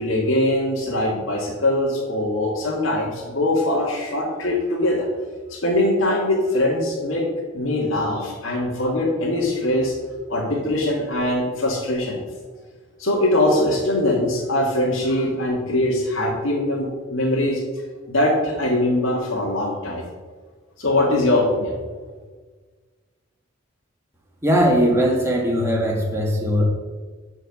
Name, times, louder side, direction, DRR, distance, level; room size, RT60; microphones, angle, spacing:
voice 1, 0.0-5.1 5.5-7.3 7.5-10.0 10.3-12.2 13.0-17.6 18.1-20.0 20.8-21.8, left 1 dB, 70° left, -4 dB, 1.9 m, -22 dB
voice 2, 24.4-26.6, equal, 15° right, -1 dB, 1.7 m, -19 dB
12.5 x 4.7 x 6.0 m, 1.5 s
head